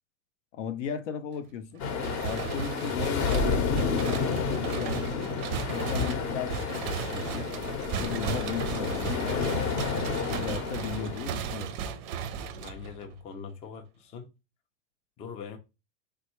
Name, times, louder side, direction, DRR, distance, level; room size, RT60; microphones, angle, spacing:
voice 1, 0.5-1.8 2.2-5.3 5.7-7.5 8.0-9.9 10.4-11.8, left 7 dB, 75° left, 0.6 m, -37 dB
sound 1, 1.8-11.2, left 5 dB, 40° left, 0.7 m, -30 dB
sound 2, 2.0-13.2, right 7 dB, 45° right, 0.5 m, -36 dB
voice 2, 12.5-14.3 15.2-15.6, left 6 dB, 20° left, 0.3 m, -42 dB
3.3 x 2.2 x 2.9 m
hypercardioid pair, 115°, 37 cm